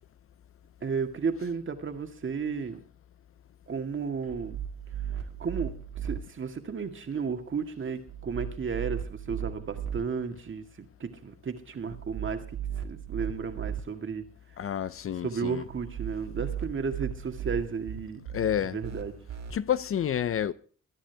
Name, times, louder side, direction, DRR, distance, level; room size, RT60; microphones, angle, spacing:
voice 1, 0.8-2.8 3.7-4.6 5.4-5.7 6.0-14.2 15.2-18.2 18.6-19.1, right 5 dB, 40° right, 2.0 m, -33 dB
sound 1, 4.3-6.2 8.1-10.0 11.9-13.8 15.7-19.5, right 9 dB, 60° right, 1.9 m, -36 dB
voice 2, 14.6-15.6 18.3-18.8 19.5-20.5, left 9 dB, 45° left, 0.6 m, -29 dB
22.0 x 10.0 x 3.4 m
cardioid pair, 90°, 30 cm